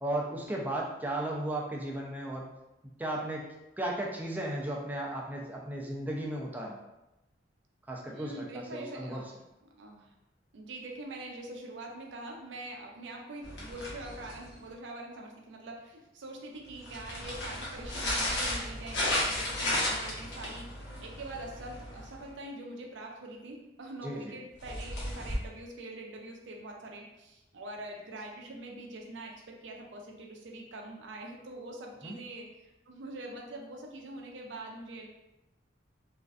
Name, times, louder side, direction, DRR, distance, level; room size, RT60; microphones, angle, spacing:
voice 1, 0.0-2.5 3.0-6.8 7.9-9.2 24.0-24.3 32.0-32.2, right 1 dB, 10° right, -2 dB, 0.3 m, -35 dB
voice 2, 8.1-9.3 9.6-10.1 10.5-35.1, right 2 dB, 70° right, 0 dB, 0.4 m, -44 dB
sound 1, 13.4-14.6 16.7-22.3 24.6-25.4, left 1 dB, 65° left, 0.8 m, -34 dB
2.5 x 2.2 x 2.3 m, 0.94 s
head